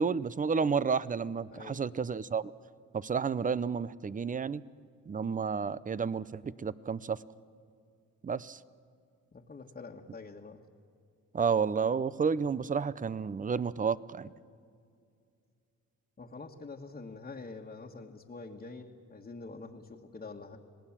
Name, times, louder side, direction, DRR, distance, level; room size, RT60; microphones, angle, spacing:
voice 1, 0.0-2.5 2.9-4.6 5.1-7.2 8.2-8.6 11.3-14.3, right 6 dB, 25° right, 18 dB, 0.6 m, -31 dB
voice 2, 1.5-1.8 9.3-10.6 16.2-20.6, left 3 dB, 30° left, -2 dB, 1.6 m, -46 dB
27.0 x 18.5 x 7.4 m, 2.3 s
cardioid pair, 90°, 30 cm